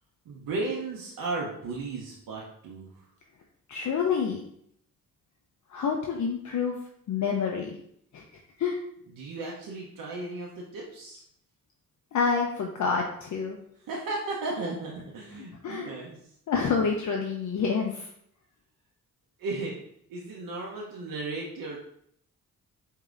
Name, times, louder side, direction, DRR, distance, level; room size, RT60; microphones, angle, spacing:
voice 1, 0.3-3.0 9.2-11.2 13.8-16.1 19.4-19.8 20.1-21.8, right 3 dB, 80° right, -3 dB, 0.7 m, -35 dB
voice 2, 3.7-4.4 5.7-6.8 7.1-7.7 8.1-8.2 8.6-8.8 12.1-13.6 15.6-15.9 16.5-18.1, left 5 dB, 60° left, 1 dB, 0.6 m, -27 dB
4.8 x 2.8 x 2.4 m, 0.69 s
cardioid pair, 65°, 33 cm